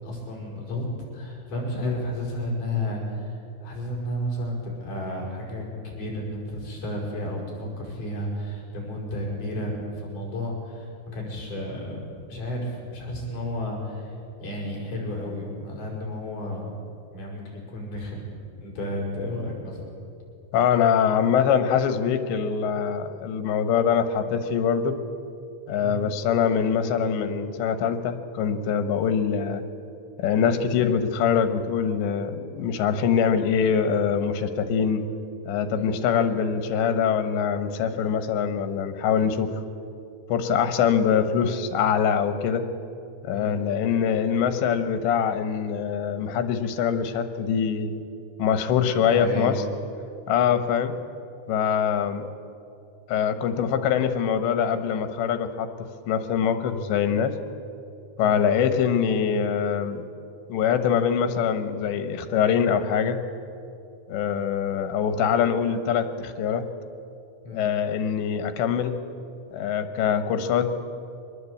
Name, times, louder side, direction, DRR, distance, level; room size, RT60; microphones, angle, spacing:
voice 1, 0.0-14.1 14.4-16.7 17.1-18.3 18.6-19.8 25.8-26.0 35.7-35.9 43.3-43.6 49.0-49.6 58.2-58.4 67.4-67.7, left 1 dB, 45° left, -2 dB, 7.0 m, -32 dB
voice 2, 20.5-24.9 25.7-29.6 30.2-35.0 35.5-39.5 40.3-42.6 43.2-48.0 48.4-49.5 50.3-51.0 51.5-52.2 53.1-55.7 56.1-57.4 58.2-60.0 60.5-63.2 64.1-66.6 67.5-68.9 69.5-70.7, left 7 dB, 85° left, 9 dB, 3.5 m, -23 dB
24.0 x 20.0 x 8.5 m, 2.7 s
omnidirectional pair, 5.0 m